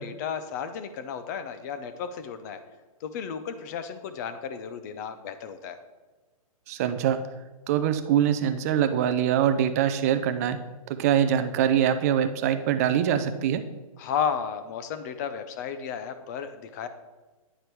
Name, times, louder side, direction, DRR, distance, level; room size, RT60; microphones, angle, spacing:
voice 1, 0.0-2.6 3.0-5.8 14.0-16.9, left 7 dB, 30° left, 11 dB, 0.6 m, -33 dB
voice 2, 6.7-7.2 7.7-10.6 11.0-13.6, right 9 dB, 25° right, 10 dB, 0.4 m, -23 dB
10.0 x 5.0 x 4.6 m, 1.2 s
hypercardioid pair, 155°, 19 cm